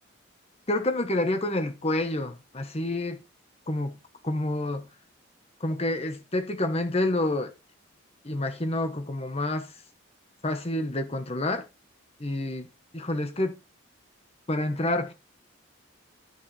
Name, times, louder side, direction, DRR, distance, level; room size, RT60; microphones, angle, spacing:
voice 1, 0.7-3.2 3.7-4.0 4.2-4.9 5.6-7.5 8.2-9.7 10.4-11.6 12.2-12.7 12.9-13.6 14.5-15.1, left 1 dB, 30° left, 1.2 m, -28 dB
9.9 x 7.6 x 3.4 m
head